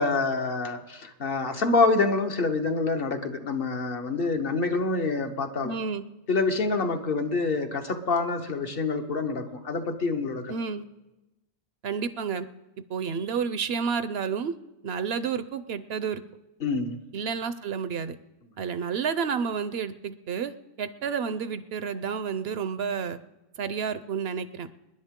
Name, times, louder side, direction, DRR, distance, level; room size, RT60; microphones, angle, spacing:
voice 1, 0.0-5.7 6.3-10.5 16.6-17.0, left 3 dB, 55° left, 5 dB, 1.2 m, -26 dB
voice 2, 5.6-6.0 10.5-10.8 11.8-12.5 12.9-14.5 14.8-16.2 17.1-18.2 18.6-20.5 20.8-23.2 23.6-24.7, right 6 dB, 65° right, 13 dB, 0.8 m, -30 dB
27.5 x 10.5 x 3.7 m, 1.0 s
omnidirectional pair, 1.2 m